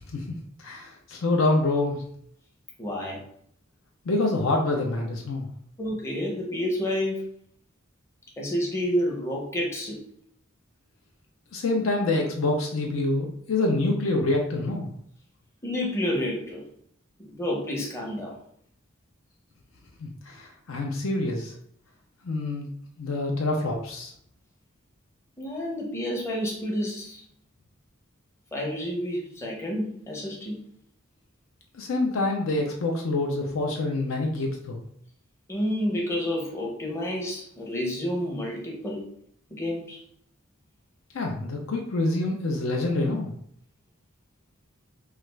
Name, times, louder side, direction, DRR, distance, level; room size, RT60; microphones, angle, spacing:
voice 1, 0.1-2.0 4.1-5.5 11.5-14.9 20.0-21.5 22.2-22.7 23.0-24.1 31.7-34.8 41.1-43.3, left 2 dB, 70° left, 1 dB, 0.5 m, -26 dB
voice 2, 2.8-3.2 5.8-7.3 8.4-10.0 15.6-16.6 17.2-18.4 25.4-27.2 28.5-30.6 32.1-32.2 35.5-39.0 39.5-40.0, equal, 15° left, -2 dB, 0.7 m, -29 dB
3.2 x 2.4 x 3.2 m, 0.65 s
head